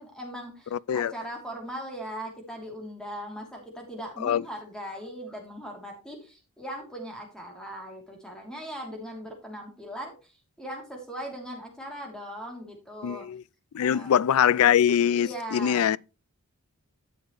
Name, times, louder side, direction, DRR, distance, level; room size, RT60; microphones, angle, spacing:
voice 1, 0.0-13.3 13.8-14.2 15.1-15.9, equal, 5° left, 3.0 m, -39 dB
voice 2, 0.7-1.1 4.2-4.4 13.0-13.4 13.7-16.0, left 9 dB, 70° left, 0.3 m, -23 dB
12.0 x 7.2 x 3.1 m
head